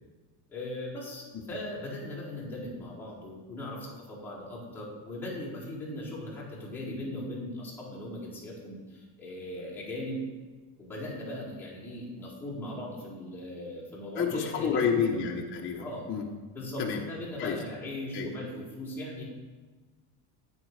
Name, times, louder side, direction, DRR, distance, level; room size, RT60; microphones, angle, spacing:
voice 1, 0.5-10.2 10.8-15.1 15.8-16.1 16.5-19.2, left 1 dB, 5° left, -10 dB, 4.9 m, -39 dB
voice 2, 14.2-16.3 16.8-17.0 17.4-17.6 18.1-18.3, left 6 dB, 25° left, -1 dB, 1.1 m, -29 dB
15.0 x 9.0 x 4.9 m, 1.3 s
cardioid pair, 165°, 45 cm